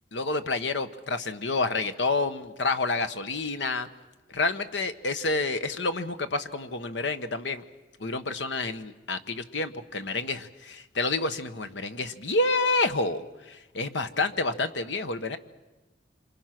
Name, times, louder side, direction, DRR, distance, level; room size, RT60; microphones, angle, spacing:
voice 1, 0.1-3.9 4.3-7.6 8.0-15.4, left 3 dB, 80° left, 9 dB, 1.3 m, -29 dB
27.0 x 26.5 x 6.1 m, 1.1 s
head